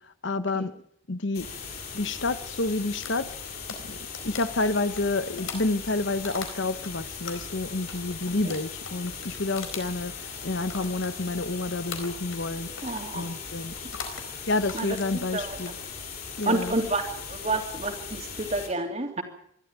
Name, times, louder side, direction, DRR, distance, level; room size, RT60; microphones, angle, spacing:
voice 1, 0.2-0.7 1.1-1.5 1.9-3.3 3.8-4.0 4.2-12.7 13.1-13.7 14.5-15.7 16.4-16.7, left 2 dB, 60° left, 1.0 m, -29 dB
sound 1, 1.3-18.7, left 6 dB, 45° left, 6.6 m, -39 dB
sound 2, 3.0-6.9 7.2-11.5 11.9-12.5 12.8-13.1 13.8-14.3 14.6-15.8 16.3-16.7, left 5 dB, 80° left, 4.5 m, -40 dB
voice 2, 12.8-13.4 14.7-15.6 16.4-19.2, right 2 dB, 30° right, 3.1 m, -30 dB
24.0 x 12.5 x 9.1 m
head